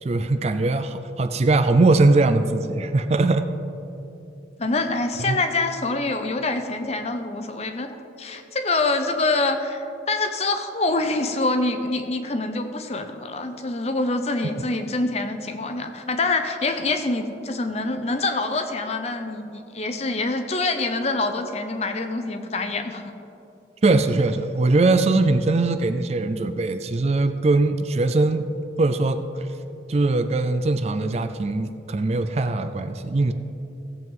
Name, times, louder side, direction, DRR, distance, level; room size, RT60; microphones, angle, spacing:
voice 1, 0.0-3.5 5.3-5.4 23.8-28.5 28.8-29.2 29.9-33.3, right 2 dB, 35° right, 9 dB, 0.3 m, -21 dB
voice 2, 4.6-23.1, left 2 dB, 35° left, 7 dB, 0.7 m, -25 dB
16.5 x 7.7 x 3.7 m, 2.9 s
head